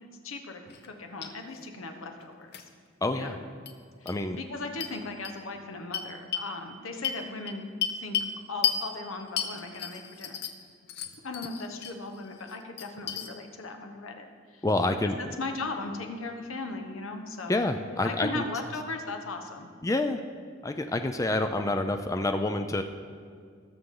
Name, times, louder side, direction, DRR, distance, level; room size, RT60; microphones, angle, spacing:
voice 1, 0.0-2.6 3.1-3.4 4.0-7.6 8.0-8.2 8.5-10.4 11.2-14.6 15.0-15.1 15.4-17.6 17.9-19.7, left 3 dB, 90° left, 4 dB, 1.2 m, -38 dB
sound 1, 0.7-0.9 1.2-1.3 2.5-2.6 3.7-3.8 4.1-4.2 4.8-4.9 5.2-5.3 5.9-6.5 7.0-8.3 8.6-8.8 9.4-10.6 10.9-11.9 12.3-13.3, left 8 dB, 55° left, 0.8 m, -32 dB
voice 2, 3.0-3.4 4.1-4.4 14.6-15.2 17.5-18.4 19.8-20.2 20.6-22.8, left 2 dB, 15° left, 7 dB, 0.4 m, -27 dB
19.0 x 6.6 x 3.8 m, 2.1 s
head